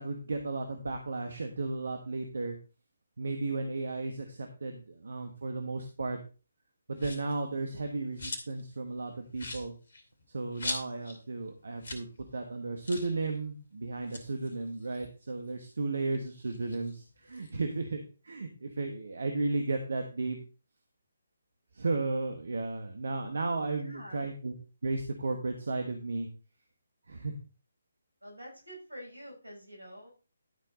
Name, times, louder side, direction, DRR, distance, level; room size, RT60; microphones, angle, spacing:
voice 1, 0.0-2.6 3.2-6.2 6.9-9.7 10.3-12.1 12.3-20.4 21.7-24.5 24.8-26.3 27.1-27.3, right 3 dB, 65° right, 5 dB, 1.3 m, -34 dB
sound 1, 7.0-7.4 7.8-8.7 9.0-9.1 9.3-11.2 11.5-11.6 11.8-12.1 12.4-12.5 12.8-13.2 13.9-15.7 16.1-17.5, left 2 dB, 55° left, 2.5 m, -41 dB
voice 2, 23.7-24.3 28.2-30.1, equal, 85° right, 0 dB, 5.3 m, -47 dB
12.0 x 5.7 x 4.0 m, 0.34 s
figure-of-eight pair, 145°, 0 cm